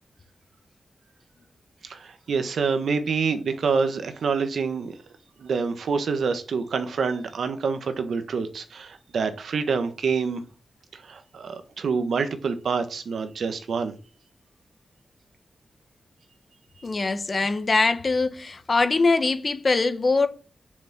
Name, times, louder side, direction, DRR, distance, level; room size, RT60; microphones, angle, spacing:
voice 1, 1.8-5.0 5.4-10.4 10.9-14.0, right 5 dB, 80° right, 1.4 m, -27 dB
voice 2, 16.8-20.3, left 3 dB, 35° left, 1.1 m, -22 dB
7.0 x 6.3 x 7.6 m
wide cardioid pair, 150°, 0 cm